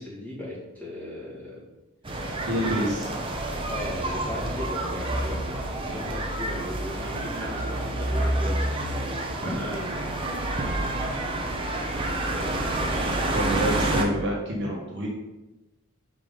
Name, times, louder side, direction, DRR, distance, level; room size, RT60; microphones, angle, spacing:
voice 1, 0.0-1.6 2.2-2.4 3.6-8.9 9.4-10.4 12.3-13.4, left 1 dB, 5° left, -8 dB, 2.0 m, -37 dB
sound 1, 2.0-14.0, right 1 dB, 25° right, 0.6 m, -28 dB
voice 2, 2.4-3.1 9.4-9.6 12.9-15.1, equal, 50° right, -3 dB, 1.3 m, -28 dB
5.3 x 4.9 x 3.8 m, 1.0 s
head